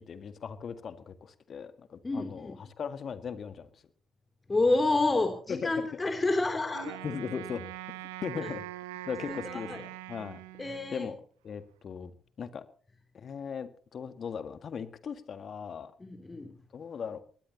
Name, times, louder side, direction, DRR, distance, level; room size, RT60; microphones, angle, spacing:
voice 1, 0.0-3.7 5.5-5.9 7.0-7.7 8.2-8.7 9.1-10.4 10.9-11.1 11.4-12.1 12.4-12.6 13.1-15.9 16.7-17.2, left 6 dB, 50° left, 11 dB, 1.7 m, -38 dB
voice 2, 2.0-2.6 4.5-7.0 8.4-8.5 9.3-9.8 10.6-11.1 16.0-16.6, left 2 dB, 25° left, 5 dB, 3.0 m, -29 dB
Wind instrument woodwind instrument, 6.7-11.1, right 15 dB, 80° right, 0.9 m, -42 dB
22.0 x 20.0 x 2.9 m, 0.44 s
figure-of-eight pair, 45°, 0 cm